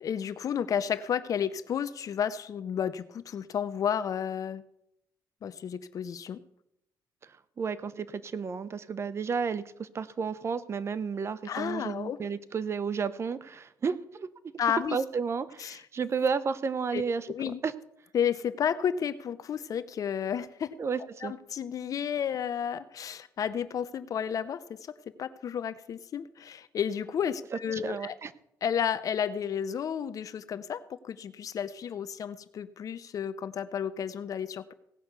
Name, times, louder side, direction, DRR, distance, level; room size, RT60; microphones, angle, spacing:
voice 1, 0.0-4.6 5.4-6.4 11.4-12.2 14.6-15.0 15.6-15.8 16.9-17.0 17.3-17.6 18.1-20.7 21.2-24.9 25.2-28.1 28.6-34.7, left 8 dB, 55° left, 13 dB, 0.7 m, -32 dB
voice 2, 7.6-14.3 14.9-17.3 17.6-17.7 20.8-21.3 27.7-28.3, right 5 dB, 40° right, 14 dB, 0.9 m, -32 dB
17.0 x 5.9 x 8.1 m, 0.77 s
cardioid pair, 110°, 7 cm